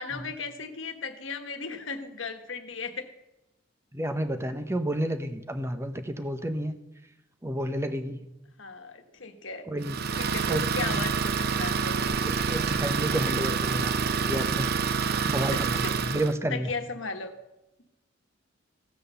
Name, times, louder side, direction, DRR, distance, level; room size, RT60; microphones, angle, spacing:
voice 1, 0.0-3.1 8.6-9.7 10.2-12.2 15.5-15.9 16.5-17.3, left 4 dB, 75° left, 6 dB, 1.3 m, -36 dB
voice 2, 3.9-6.8 7.4-8.2 9.7-10.0 10.5-11.1 12.2-13.9 14.2-14.8 15.2-16.7, right 1 dB, 15° right, 9 dB, 0.8 m, -30 dB
Idling, 9.8-16.3, right 5 dB, 55° right, 0.6 m, -27 dB
16.0 x 6.2 x 6.8 m, 0.93 s
head